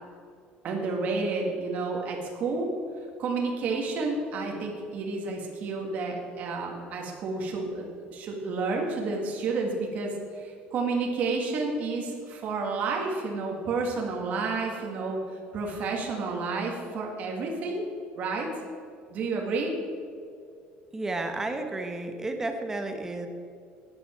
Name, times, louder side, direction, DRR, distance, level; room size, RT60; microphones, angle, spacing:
voice 1, 0.6-15.2 15.5-17.9 18.2-18.5 19.1-19.7, right 3 dB, 40° right, 0 dB, 2.0 m, -30 dB
voice 2, 20.9-23.3, right 2 dB, 10° right, 5 dB, 0.9 m, -32 dB
14.0 x 10.0 x 4.5 m, 2.3 s
cardioid pair, 175°, 4 cm